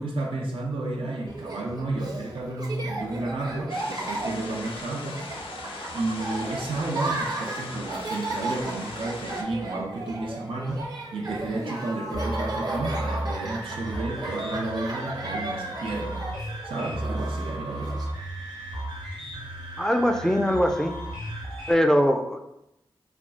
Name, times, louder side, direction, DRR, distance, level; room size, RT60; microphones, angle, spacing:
voice 1, 0.0-5.2 5.9-10.8 11.1-16.2 16.6-17.9, right 2 dB, 85° right, 0 dB, 0.5 m, -31 dB
Laughter, 1.3-18.0, right 2 dB, 45° right, 0.7 m, -35 dB
sound 1, 3.7-9.4, left 3 dB, 85° left, 0.4 m, -39 dB
sound 2, 12.1-21.7, right 1 dB, 60° right, 1.1 m, -34 dB
voice 2, 19.8-21.0 21.7-22.4, equal, 5° left, 5 dB, 0.3 m, -22 dB
2.3 x 2.1 x 3.8 m, 0.84 s
cardioid pair, 40°, 9 cm